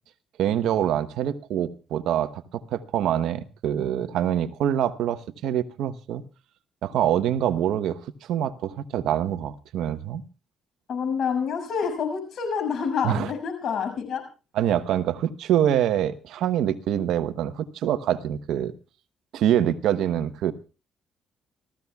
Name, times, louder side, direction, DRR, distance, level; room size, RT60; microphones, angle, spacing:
voice 1, 0.4-6.2 6.8-10.2 13.0-13.3 14.5-18.7 19.3-20.5, right 10 dB, 85° right, 1.0 m, -25 dB
voice 2, 10.9-14.2, left 6 dB, 70° left, 6.4 m, -27 dB
29.5 x 14.5 x 2.4 m
cardioid pair, 90°, 0 cm